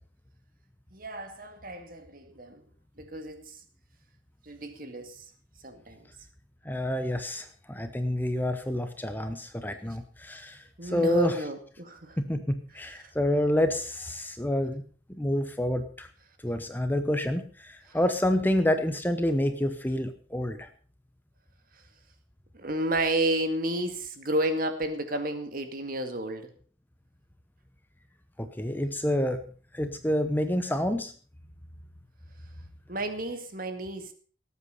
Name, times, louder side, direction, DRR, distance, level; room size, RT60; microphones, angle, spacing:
voice 1, 0.9-2.6 3.0-3.6 4.4-5.3 5.6-6.1 10.8-12.2 12.7-13.1 17.9-18.0 22.5-26.5 32.9-34.1, right 1 dB, 45° right, 7 dB, 2.1 m, -32 dB
voice 2, 6.6-11.4 12.2-14.8 15.1-16.1 16.4-20.7 28.4-29.4 29.7-31.1, left 1 dB, 10° left, 8 dB, 0.8 m, -28 dB
18.0 x 8.4 x 5.6 m, 0.42 s
head